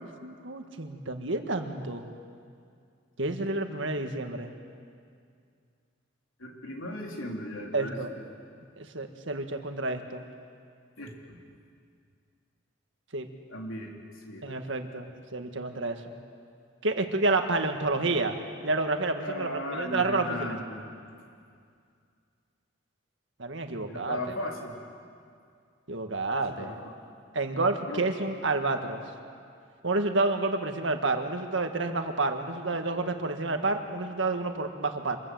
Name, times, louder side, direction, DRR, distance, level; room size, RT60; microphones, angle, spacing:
voice 1, 0.2-2.0 3.2-4.5 7.7-8.1 8.8-10.2 13.1-13.3 14.4-16.0 16.8-18.4 18.6-20.5 23.4-24.2 25.9-26.8 27.3-29.0 29.8-35.2, right 3 dB, 70° right, 5 dB, 1.8 m, -29 dB
voice 2, 6.4-8.2 11.0-11.4 13.5-13.9 14.3-14.5 19.2-20.8 23.9-24.8 26.6-26.7 27.9-28.1, left 1 dB, 90° left, 0 dB, 3.6 m, -36 dB
26.0 x 21.0 x 7.8 m, 2.3 s
head